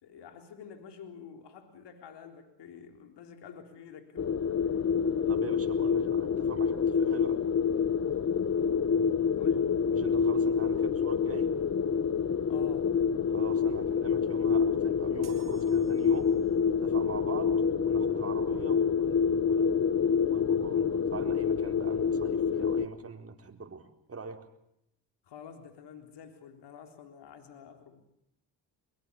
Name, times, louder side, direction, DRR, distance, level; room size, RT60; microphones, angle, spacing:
voice 1, 0.0-4.3 4.6-4.8 9.4-9.7 12.5-12.9 25.2-28.0, left 7 dB, 70° left, 6 dB, 3.9 m, -49 dB
sound 1, 4.2-22.9, left 6 dB, 35° left, 1.2 m, -27 dB
voice 2, 5.3-7.4 9.9-11.6 13.3-16.3 16.8-17.6 17.8-19.7 20.3-24.4, right 5 dB, 30° right, 4 dB, 4.1 m, -43 dB
sound 2, 15.2-16.7, right 9 dB, 60° right, 3.2 m, -53 dB
23.0 x 23.0 x 6.9 m, 0.77 s
supercardioid pair, 75°, 43 cm